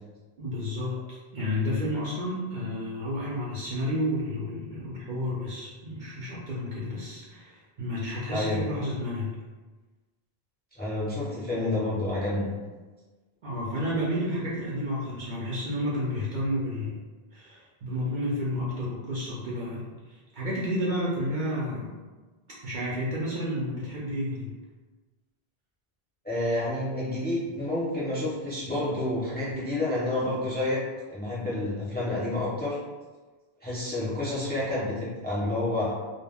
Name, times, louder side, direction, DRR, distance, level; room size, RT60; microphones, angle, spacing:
voice 1, 0.4-9.3 13.4-17.0 17.3-21.9 22.6-24.5, left 1 dB, 55° right, -6 dB, 0.6 m, -31 dB
voice 2, 8.3-8.6 10.8-12.5 26.2-30.8 31.1-32.8 33.6-35.9, left 1 dB, 10° left, -8 dB, 0.6 m, -29 dB
2.2 x 2.1 x 3.4 m, 1.3 s
omnidirectional pair, 1.0 m